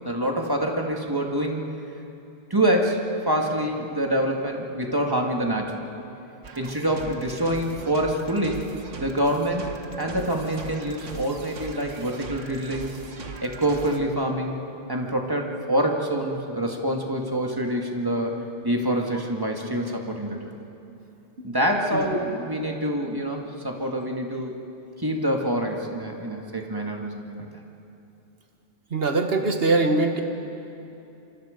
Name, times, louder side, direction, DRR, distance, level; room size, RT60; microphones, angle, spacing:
voice 1, 0.0-1.6 2.5-5.8 6.6-12.9 13.4-14.6 14.9-18.3 18.6-20.5 21.4-24.6 25.0-27.5, right 1 dB, 20° right, 1 dB, 2.0 m, -26 dB
sound 1, 6.4-14.0, right 4 dB, 85° right, 1.8 m, -40 dB
voice 2, 28.9-30.2, right 3 dB, 55° right, 5 dB, 1.7 m, -22 dB
27.5 x 24.5 x 5.2 m, 2.9 s
omnidirectional pair, 1.2 m